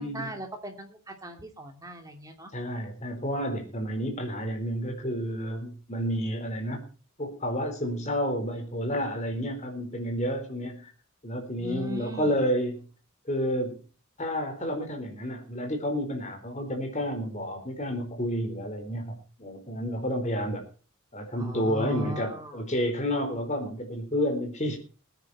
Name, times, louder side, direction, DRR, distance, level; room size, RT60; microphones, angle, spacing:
voice 1, 0.0-2.5 11.6-12.4 21.4-22.6, equal, 15° right, 4 dB, 2.7 m, -38 dB
voice 2, 2.5-6.9 7.2-10.9 11.2-12.8 13.3-13.8 14.2-20.6 21.1-24.8, equal, 30° left, 4 dB, 4.3 m, -30 dB
20.5 x 9.9 x 4.3 m, 0.37 s
head